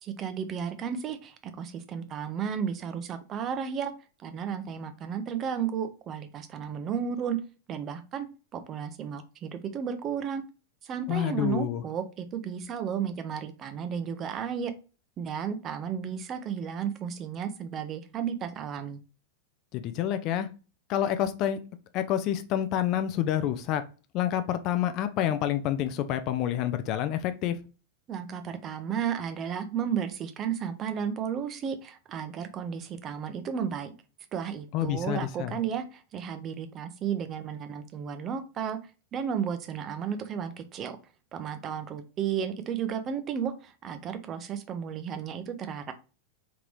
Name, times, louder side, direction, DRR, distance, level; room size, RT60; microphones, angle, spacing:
voice 1, 0.0-3.9 4.2-7.4 7.7-8.3 8.5-10.4 10.8-14.7 15.2-19.0 28.1-33.9 34.3-38.8 39.1-41.0 41.3-45.9, right 7 dB, 30° right, 9 dB, 0.5 m, -33 dB
voice 2, 11.1-11.8 19.7-20.5 20.9-21.6 21.9-23.8 24.1-27.6 34.7-35.6, left 11 dB, 40° left, 10 dB, 0.4 m, -28 dB
3.5 x 2.9 x 3.2 m, 0.33 s
figure-of-eight pair, 90°, 0 cm